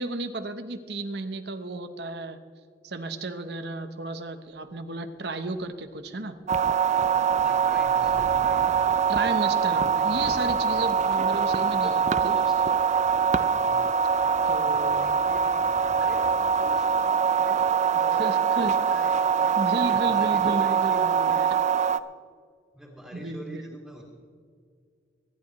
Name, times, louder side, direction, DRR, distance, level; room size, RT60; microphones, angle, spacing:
voice 1, 0.0-2.4 2.8-6.4 9.1-12.4 14.5-15.2 18.2-18.7 19.6-21.5 23.1-23.7, right 2 dB, 60° right, 8 dB, 1.0 m, -33 dB
Thunderstorm, 4.6-4.7 5.0-5.1 5.4-19.0, equal, 60° left, 4.1 m, -49 dB
sound 1, 6.5-22.0, right 7 dB, 35° right, 0.4 m, -23 dB
voice 2, 7.4-8.8 11.8-12.5 13.5-13.9 15.0-19.6 20.0-21.5 22.7-24.0, equal, ahead, -4 dB, 2.3 m, -45 dB
25.5 x 11.0 x 3.2 m, 2.1 s
head